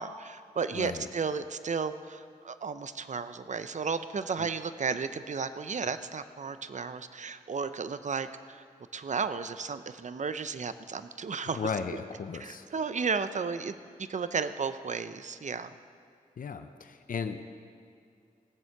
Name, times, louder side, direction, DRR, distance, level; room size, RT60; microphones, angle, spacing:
voice 1, 0.0-8.6 8.9-11.6 12.4-13.8 14.1-15.7, right 5 dB, 55° right, 11 dB, 0.7 m, -33 dB
voice 2, 0.7-1.1 4.4-4.5 11.5-12.7 16.4-17.4, left 6 dB, 65° left, 8 dB, 0.7 m, -35 dB
18.0 x 7.8 x 6.0 m, 2.4 s
cardioid pair, 55°, 15 cm